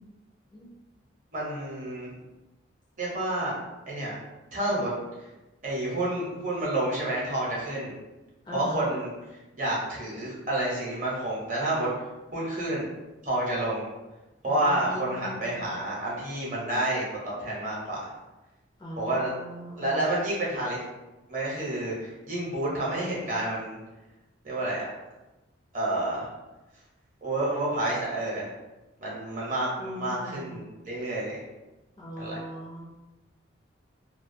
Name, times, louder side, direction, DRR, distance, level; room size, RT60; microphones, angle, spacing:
voice 1, 1.3-2.1 3.0-3.6 3.9-4.1 4.5-4.9 5.6-7.9 8.5-9.1 9.6-11.9 12.3-12.9 13.2-13.9 14.4-18.1 19.0-19.3 19.7-20.8 21.3-23.8 24.4-24.8 25.7-26.3 27.2-28.5 29.0-31.4 32.2-32.4, right 1 dB, 40° right, -5 dB, 0.7 m, -29 dB
voice 2, 8.4-8.9 14.5-15.7 18.8-20.2 29.8-30.6 32.0-32.8, equal, 25° left, -4 dB, 0.3 m, -40 dB
2.2 x 2.2 x 2.5 m, 1.1 s
head